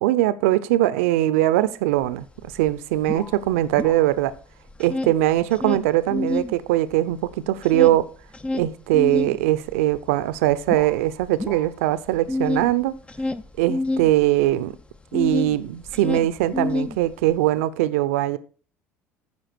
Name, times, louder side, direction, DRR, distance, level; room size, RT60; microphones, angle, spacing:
voice 1, 0.0-4.3 4.8-8.1 8.5-13.0 13.6-14.8 15.1-18.4, right 15 dB, 70° right, 0.7 m, -21 dB
sound 1, 2.0-2.1 2.4-4.4 4.7-6.5 6.9-15.6 15.8-17.4, left 2 dB, 15° left, 0.7 m, -28 dB
15.0 x 5.7 x 4.5 m
figure-of-eight pair, 65°, 8 cm